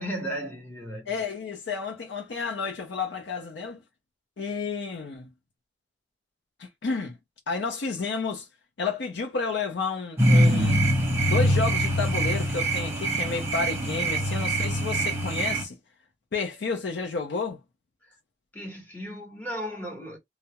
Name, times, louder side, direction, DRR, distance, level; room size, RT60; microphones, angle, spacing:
voice 1, 0.0-1.2 18.0-18.2 18.5-20.2, equal, 10° left, 0.9 m, -35 dB
voice 2, 1.1-3.8 4.4-5.3 6.6-7.2 7.5-8.5 8.8-10.9 11.2-15.8 16.3-17.6, left 4 dB, 70° left, 0.5 m, -31 dB
sound 1, 10.2-15.6, right 1 dB, 15° right, 0.9 m, -23 dB
2.2 x 2.0 x 2.8 m
head